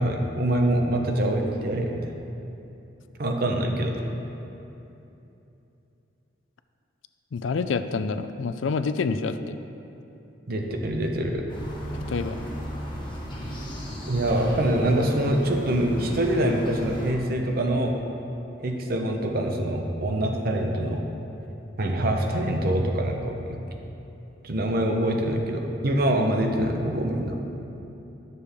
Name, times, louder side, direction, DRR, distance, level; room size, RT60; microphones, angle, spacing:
voice 1, 0.0-2.0 3.2-4.0 10.5-11.4 14.1-18.0 18.6-21.0 21.8-23.6 24.4-27.4, right 1 dB, 50° right, 2 dB, 0.8 m, -25 dB
voice 2, 7.3-9.6 12.1-12.5, left 4 dB, 85° left, 11 dB, 0.4 m, -27 dB
sound 1, 11.5-17.1, equal, 25° left, 1.3 m, -35 dB
11.0 x 6.8 x 3.5 m, 2.9 s
head